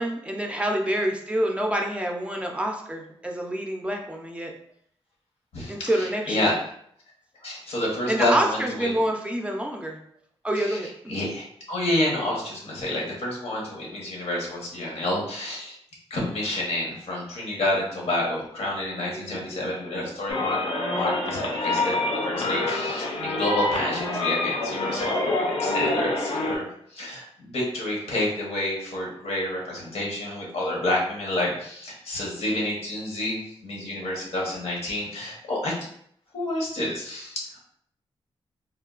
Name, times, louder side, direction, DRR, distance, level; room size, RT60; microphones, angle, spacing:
voice 1, 0.0-4.5 5.7-6.5 8.1-10.0 10.4-11.2 19.1-19.7, right 1 dB, 10° right, 1 dB, 0.4 m, -27 dB
voice 2, 5.5-6.6 7.4-8.3 8.8-8.9 10.5-10.8 11.1-15.8 16.1-26.6 26.9-35.7 36.3-37.6, left 1 dB, 90° left, -2 dB, 1.1 m, -29 dB
sound 1, 20.3-26.6, left 2 dB, 60° left, 0.5 m, -26 dB
3.5 x 2.2 x 2.4 m, 0.67 s
wide cardioid pair, 115°, 10 cm